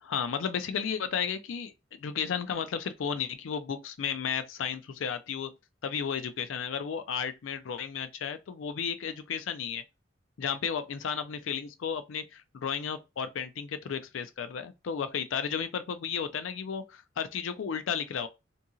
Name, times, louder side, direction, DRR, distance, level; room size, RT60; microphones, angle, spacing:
voice 1, 0.0-1.7 2.0-5.5 5.8-9.8 10.4-18.3, left 7 dB, 85° left, 0.4 m, -33 dB
2.7 x 2.7 x 2.4 m
head